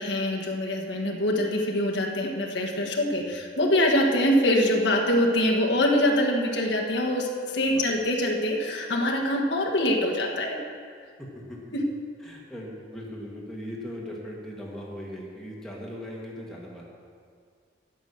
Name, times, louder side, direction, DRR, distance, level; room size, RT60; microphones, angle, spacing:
voice 1, 0.0-10.6 11.7-11.8, left 1 dB, 80° left, -1 dB, 1.5 m, -24 dB
voice 2, 7.6-7.9 11.2-11.6 12.2-16.9, equal, 5° left, -4 dB, 1.7 m, -39 dB
9.3 x 9.0 x 6.7 m, 2.1 s
head